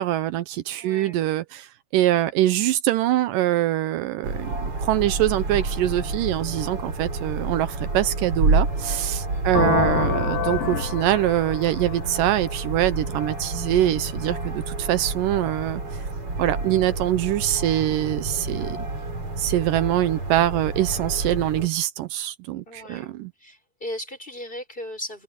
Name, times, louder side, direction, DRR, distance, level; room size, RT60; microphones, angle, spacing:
voice 1, 0.0-15.8 16.4-18.8 19.4-23.3, right 13 dB, 80° right, 2.4 m, -24 dB
voice 2, 0.8-1.2 2.2-2.5 9.3-9.8 22.7-23.1 23.4-25.2, left 1 dB, 15° left, 5.4 m, -38 dB
sound 1, 4.2-21.7, right 2 dB, 40° right, 7.0 m, -29 dB
sound 2, 9.6-13.3, left 6 dB, 90° left, 5.1 m, -27 dB
omnidirectional pair, 3.9 m